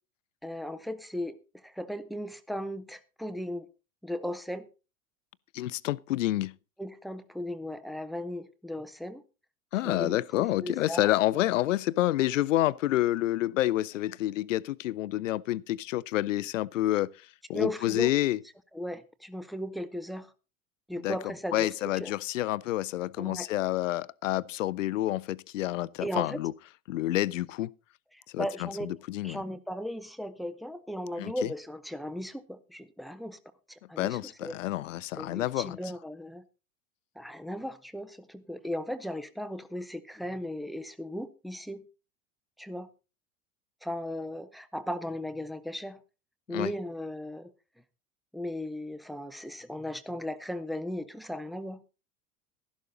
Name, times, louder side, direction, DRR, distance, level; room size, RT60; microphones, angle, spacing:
voice 1, 0.4-3.7 4.0-4.7 6.8-9.2 9.8-11.1 17.5-18.1 18.7-20.3 20.9-21.7 22.0-22.1 23.2-23.5 26.0-26.4 28.4-28.9 29.2-33.4 33.7-34.5 35.2-36.4 37.2-41.8 42.6-42.9 43.8-46.0 46.5-47.5 48.3-51.8, equal, ahead, 0.7 m, -36 dB
voice 2, 5.5-6.5 9.7-17.1 17.5-18.4 21.0-21.2 21.5-26.5 26.9-27.7 28.3-29.4 31.2-31.5 34.0-35.8 46.5-46.7, left 15 dB, 60° left, 0.6 m, -28 dB
12.5 x 11.5 x 3.9 m
figure-of-eight pair, 80°, 43 cm